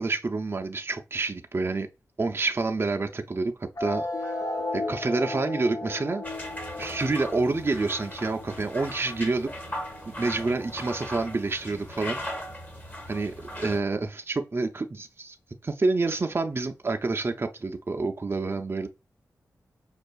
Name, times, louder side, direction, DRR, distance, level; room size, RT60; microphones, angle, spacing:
voice 1, 0.0-1.9 2.2-4.3 4.7-6.2 6.8-9.5 10.2-12.2 13.1-15.4 15.6-18.9, right 3 dB, 35° right, 0.5 m, -28 dB
sound 1, 3.8-10.7, left 2 dB, 60° left, 0.7 m, -35 dB
sound 2, 6.2-13.8, equal, 30° left, 1.2 m, -38 dB
5.3 x 2.4 x 2.3 m
cardioid pair, 55°, 7 cm